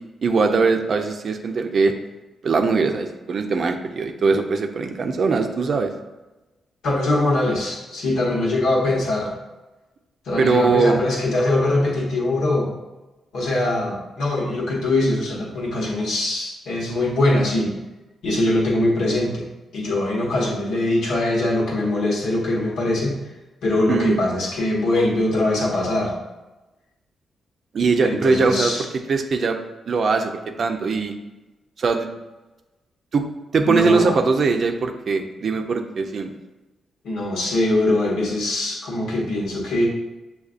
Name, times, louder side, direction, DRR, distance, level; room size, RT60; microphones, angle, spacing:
voice 1, 0.2-1.9 2.4-5.9 10.4-11.0 23.9-24.2 27.7-28.7 29.1-29.6 29.9-30.3 30.6-31.1 31.8-32.1 33.1-33.3 33.5-36.3, right 4 dB, 60° right, 5 dB, 0.5 m, -20 dB
voice 2, 6.8-9.3 10.2-12.7 13.3-17.7 18.2-19.4 19.7-23.2 23.6-26.1 28.0-28.9 33.6-34.2 37.0-39.9, left 2 dB, 80° left, -3 dB, 1.1 m, -22 dB
6.5 x 2.3 x 2.5 m, 1.1 s
supercardioid pair, 50°, 0 cm